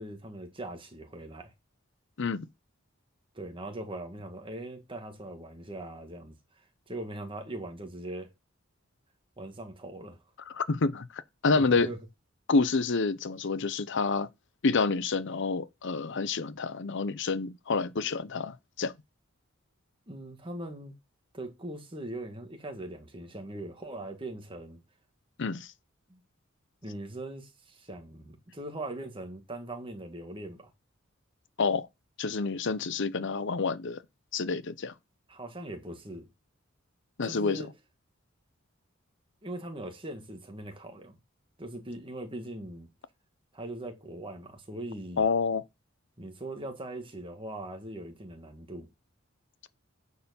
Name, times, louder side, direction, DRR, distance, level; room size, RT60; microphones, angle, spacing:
voice 1, 0.0-1.5 3.3-6.4 6.9-8.3 9.4-10.2 11.6-12.0 20.1-20.9 21.3-24.8 26.1-26.2 26.8-30.7 35.3-36.3 37.2-37.7 39.4-41.2 41.6-42.9 43.5-45.3 46.2-48.9, right 1 dB, 25° right, 1.9 m, -40 dB
voice 2, 2.2-2.5 10.5-11.9 12.5-14.3 14.6-18.9 25.4-25.7 31.6-31.9 32.2-34.0 34.3-34.9 37.2-37.6 45.2-45.6, left 4 dB, 65° left, 0.7 m, -28 dB
9.3 x 4.7 x 7.0 m
head